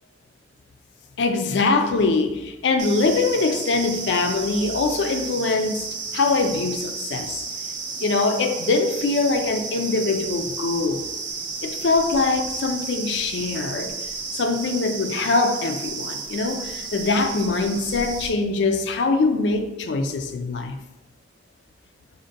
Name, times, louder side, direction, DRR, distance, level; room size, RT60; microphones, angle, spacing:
voice 1, 1.2-7.4 8.0-11.1 11.6-13.9 14.3-20.8, left 3 dB, 75° left, 6 dB, 0.4 m, -23 dB
sound 1, 2.8-18.3, right 5 dB, 85° right, 0.5 m, -33 dB
3.6 x 2.2 x 3.9 m, 0.97 s
head